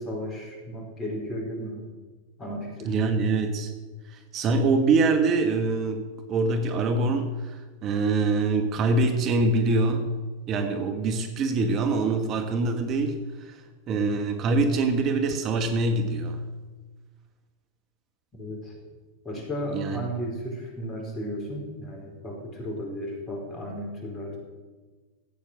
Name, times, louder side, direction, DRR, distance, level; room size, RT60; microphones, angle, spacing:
voice 1, 0.0-1.8 2.4-2.9 18.4-18.7 19.2-24.4, equal, 25° left, 0 dB, 4.7 m, -34 dB
voice 2, 2.8-3.7 4.1-6.0 6.3-10.1 10.5-16.4 19.7-20.1, right 3 dB, 40° right, 6 dB, 1.5 m, -24 dB
14.0 x 8.8 x 6.4 m, 1.3 s
hypercardioid pair, 95°, 0 cm